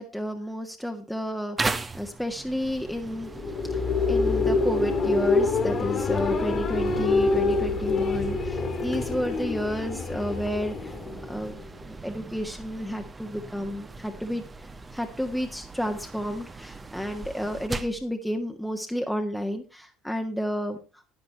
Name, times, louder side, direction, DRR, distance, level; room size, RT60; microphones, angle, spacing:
voice 1, 0.0-3.3 3.7-3.8 4.1-10.9 11.3-11.5 11.9-14.4 14.9-20.8, equal, ahead, 3 dB, 1.6 m, -31 dB
sound 1, 1.6-18.0, right 3 dB, 20° right, 1.2 m, -39 dB
sound 2, 3.1-11.8, left 3 dB, 35° left, 2.6 m, -26 dB
10.5 x 10.5 x 4.3 m, 0.31 s
figure-of-eight pair, 60°, 0 cm